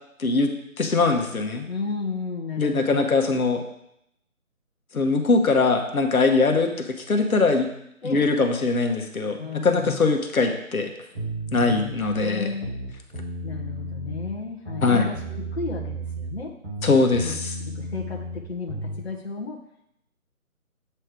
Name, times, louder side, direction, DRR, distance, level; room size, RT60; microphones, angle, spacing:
voice 1, 0.2-1.7 2.6-3.6 4.9-7.7 8.0-10.9 11.5-12.6 14.8-15.1 16.8-17.5, left 3 dB, 75° left, 4 dB, 1.1 m, -22 dB
voice 2, 1.7-3.0 8.0-8.2 9.3-10.0 12.2-12.8 13.4-16.5 17.2-17.3 17.7-19.6, left 4 dB, 45° left, -2 dB, 0.9 m, -33 dB
sound 1, 11.1-12.2 12.6-14.3 14.7-16.4 16.6-19.0, right 1 dB, 15° right, 1.3 m, -33 dB
7.8 x 3.3 x 4.9 m, 0.76 s
figure-of-eight pair, 175°, 43 cm